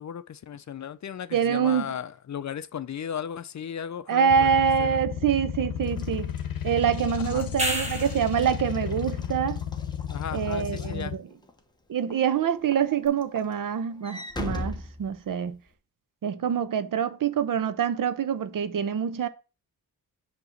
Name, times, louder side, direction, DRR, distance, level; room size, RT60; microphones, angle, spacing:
voice 1, 0.0-5.0 7.2-7.5 10.1-11.2, left 8 dB, 50° left, 0.6 m, -36 dB
voice 2, 1.3-1.9 4.1-6.3 6.6-9.6 10.3-11.2 11.9-15.6 16.2-19.3, right 7 dB, 60° right, 0.7 m, -25 dB
sound 1, 4.3-11.1, left 9 dB, 70° left, 0.9 m, -33 dB
Walk footsteps / Slam, 5.9-11.6 12.1-12.4 12.7-15.7, left 2 dB, 10° left, 1.0 m, -40 dB
sound 2, 7.4-8.4 13.0-13.1, equal, 20° right, 1.5 m, -29 dB
7.9 x 3.0 x 6.3 m
wide cardioid pair, 105°, 36 cm